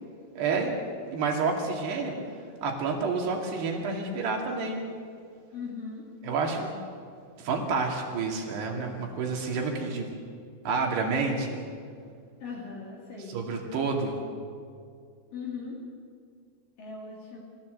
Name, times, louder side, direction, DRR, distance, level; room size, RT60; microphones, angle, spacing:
voice 1, 0.4-0.7 1.1-2.2 2.6-4.8 6.2-6.7 7.4-10.1 10.6-11.6 13.3-14.2, right 4 dB, 70° right, 1 dB, 4.5 m, -29 dB
voice 2, 5.5-6.1 12.4-13.4 15.3-15.8 16.8-17.4, left 5 dB, 55° left, -3 dB, 4.0 m, -39 dB
26.5 x 15.0 x 8.0 m, 2.2 s
omnidirectional pair, 5.1 m